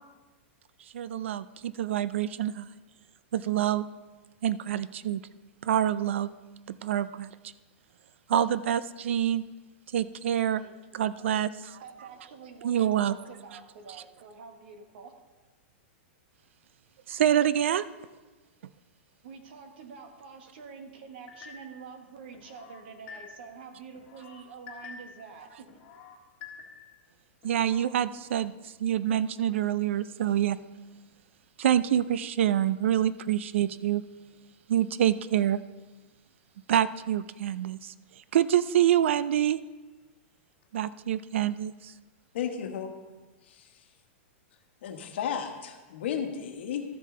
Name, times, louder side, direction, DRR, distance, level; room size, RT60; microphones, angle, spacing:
voice 1, 0.9-2.7 3.3-3.8 4.4-5.2 5.6-6.3 6.8-7.3 8.3-9.4 9.9-10.6 10.9-11.8 12.6-13.1 17.1-17.8 27.4-28.5 28.8-30.6 31.6-34.0 34.7-35.6 36.7-37.9 38.3-39.6 40.7-41.9, right 10 dB, 75° right, 16 dB, 0.4 m, -26 dB
voice 2, 10.5-11.3 11.8-15.1 19.2-25.7, right 5 dB, 55° right, 6 dB, 1.3 m, -47 dB
sound 1, 21.3-21.8 22.3-23.6 23.9-25.3 25.7-27.0 27.4-27.9, left 5 dB, 35° left, 1.8 m, -48 dB
voice 3, 42.3-42.9 43.4-43.8 44.8-46.8, left 8 dB, 65° left, 5 dB, 1.3 m, -34 dB
13.5 x 6.5 x 3.8 m, 1.2 s
supercardioid pair, 170°, 7 cm